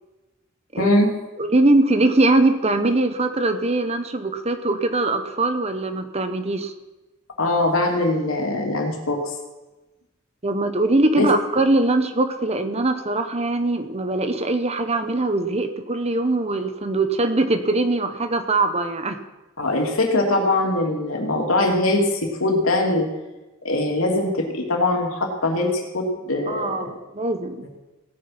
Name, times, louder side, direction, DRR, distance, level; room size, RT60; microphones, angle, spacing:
voice 1, 0.8-1.1 7.4-9.2 11.2-11.3 19.6-23.1 23.6-27.0, left 2 dB, 90° left, 1 dB, 3.0 m, -22 dB
voice 2, 1.4-6.7 10.4-19.2 26.5-27.7, right 2 dB, 30° right, 8 dB, 1.1 m, -21 dB
17.0 x 9.3 x 6.0 m, 1.1 s
head